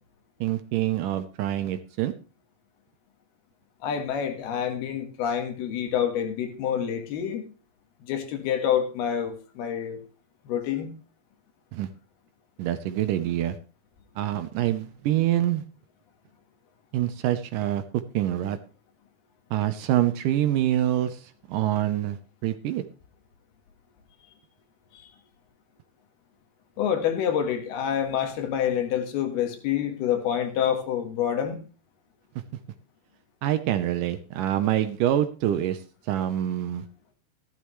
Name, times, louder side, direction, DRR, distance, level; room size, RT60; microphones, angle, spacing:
voice 1, 0.4-2.1 11.7-11.9 12.6-13.6 14.2-15.6 16.9-17.8 18.1-18.6 19.5-22.2 22.4-22.8 33.4-35.8 36.1-36.8, right 12 dB, 75° right, 10 dB, 2.0 m, -25 dB
voice 2, 3.8-7.4 8.1-10.0 10.5-10.9 24.9-25.1 26.8-31.6, left 9 dB, 80° left, 6 dB, 3.5 m, -27 dB
14.5 x 12.0 x 3.1 m, 0.35 s
omnidirectional pair, 4.4 m